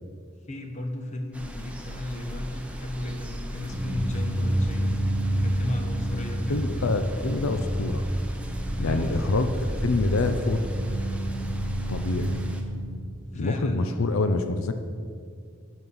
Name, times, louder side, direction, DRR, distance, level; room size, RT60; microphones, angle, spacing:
voice 1, 0.5-5.0 5.4-6.7 8.9-9.3 13.3-13.9, left 1 dB, 35° left, 4 dB, 0.9 m, -34 dB
sound 1, 1.3-12.6, equal, 5° right, 0.7 m, -37 dB
sound 2, 3.7-13.0, right 1 dB, 30° right, 1.1 m, -29 dB
voice 2, 6.2-8.0 8.8-9.5 9.8-10.6 11.9-12.4 13.3-14.7, left 3 dB, 80° left, 8 dB, 0.6 m, -26 dB
10.5 x 6.4 x 5.5 m, 2.2 s
head